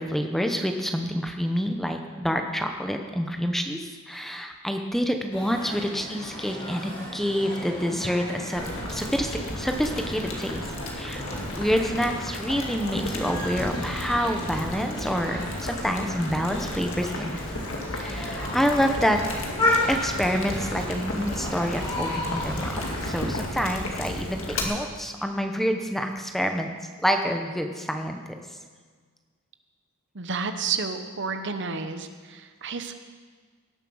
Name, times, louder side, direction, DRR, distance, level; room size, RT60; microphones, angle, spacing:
voice 1, 0.0-3.8 4.1-8.6 8.9-10.7 10.9-11.2 11.5-17.5 17.9-19.2 19.9-26.7 27.0-28.2, equal, ahead, 4 dB, 0.8 m, -27 dB
sound 1, 5.3-23.3, left 1 dB, 25° left, 3.9 m, -34 dB
Boiling, 8.5-24.6, left 1 dB, 65° left, 2.1 m, -34 dB
voice 2, 30.1-32.9, right 5 dB, 55° right, 8 dB, 0.9 m, -31 dB
18.0 x 7.5 x 6.3 m, 1.5 s
head